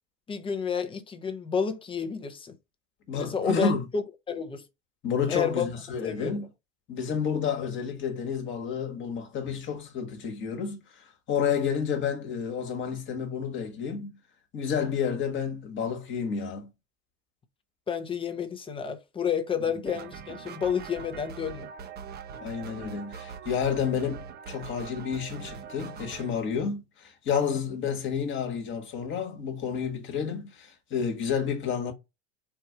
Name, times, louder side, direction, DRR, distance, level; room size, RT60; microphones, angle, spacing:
voice 1, 0.3-2.5 3.2-4.6 5.3-5.7 6.0-6.3 17.9-21.7, left 6 dB, 15° left, 0.7 m, -30 dB
voice 2, 3.1-3.9 5.0-6.4 6.9-14.1 14.5-16.7 22.4-31.9, left 7 dB, 30° left, 1.4 m, -30 dB
sound 1, 19.9-26.3, right 6 dB, 25° right, 0.7 m, -42 dB
4.5 x 2.6 x 4.5 m
supercardioid pair, 125°, 38 cm